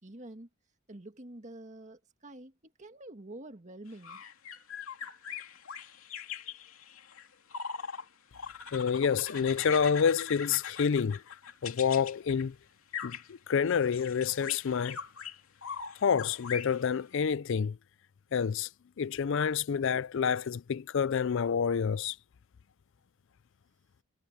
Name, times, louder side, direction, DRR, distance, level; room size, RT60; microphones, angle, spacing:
voice 1, 0.0-0.5 0.9-4.2, right 1 dB, 35° right, 1.9 m, -47 dB
sound 1, 3.9-8.1 8.3-12.5 12.9-13.3 13.7-17.2, left 7 dB, 80° left, 2.7 m, -42 dB
voice 2, 8.7-11.2 11.6-12.5 13.0-15.0 16.0-17.8 18.3-18.7 19.0-22.2, left 6 dB, 65° left, 0.4 m, -28 dB
head